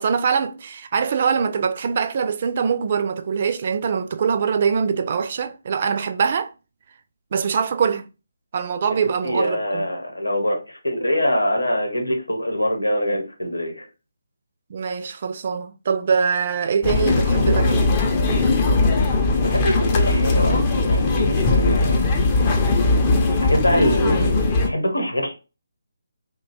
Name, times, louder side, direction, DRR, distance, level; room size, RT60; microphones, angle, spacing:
voice 1, 0.0-6.5 7.3-8.1 8.5-9.8 14.7-17.9, right 6 dB, 40° right, 0.4 m, -23 dB
voice 2, 9.2-13.9 19.4-22.0 23.3-25.3, equal, 85° left, 0.9 m, -24 dB
sound 1, 16.8-24.7, left 3 dB, 25° left, 0.5 m, -19 dB
2.8 x 2.3 x 4.1 m
figure-of-eight pair, 150°, 0 cm